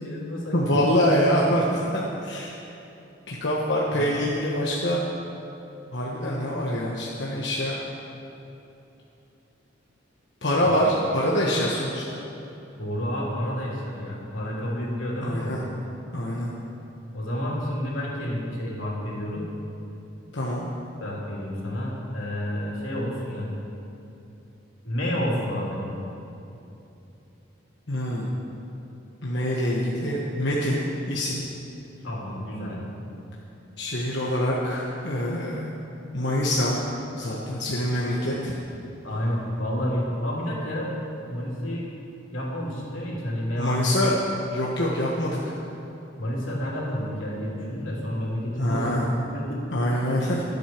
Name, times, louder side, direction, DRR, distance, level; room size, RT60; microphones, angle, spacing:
voice 1, 0.0-0.8 3.9-4.2 10.6-10.7 12.8-15.6 17.1-19.4 21.0-23.5 24.8-25.8 32.0-32.8 39.0-40.9 41.3-41.9 42.3-43.9 46.2-48.9 49.3-49.6, equal, 85° left, -4 dB, 3.4 m, -29 dB
voice 2, 0.5-2.5 3.3-5.0 5.9-7.8 10.4-12.2 15.2-15.6 16.1-16.5 20.3-20.6 27.9-28.3 29.2-30.8 31.1-31.4 33.8-35.7 36.1-36.8 37.1-38.5 43.6-44.2 44.5-45.5 48.6-49.1 49.7-50.4, equal, 60° left, -4 dB, 1.4 m, -25 dB
22.5 x 8.2 x 4.6 m, 2.9 s
head